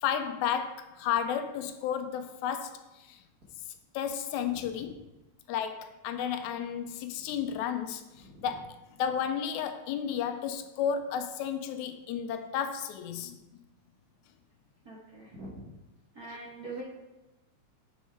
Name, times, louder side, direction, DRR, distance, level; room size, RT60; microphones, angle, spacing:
voice 1, 0.0-2.8 3.1-3.2 3.9-5.0 5.5-8.0 8.4-13.4 16.3-16.4, left 8 dB, 85° left, 8 dB, 2.0 m, -32 dB
voice 2, 4.4-4.9 7.3-7.4 8.2-8.5 14.8-15.7 16.1-16.8, right 2 dB, 45° right, -5 dB, 1.4 m, -44 dB
6.4 x 6.3 x 4.5 m, 1.0 s
omnidirectional pair, 3.3 m